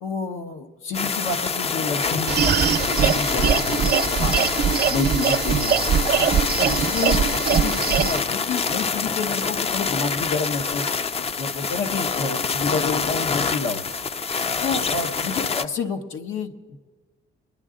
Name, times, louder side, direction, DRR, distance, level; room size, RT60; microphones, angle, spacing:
voice 1, 0.0-4.5 4.9-5.7 6.2-10.9 11.2-14.0 14.3-16.5, left 4 dB, 85° left, 4 dB, 1.0 m, -29 dB
sound 1, 0.9-15.7, left 5 dB, 30° left, 0.4 m, -26 dB
sound 2, 2.3-8.2, right 7 dB, 55° right, 0.6 m, -22 dB
22.5 x 10.5 x 3.7 m, 1.5 s
cardioid pair, 90°, 20 cm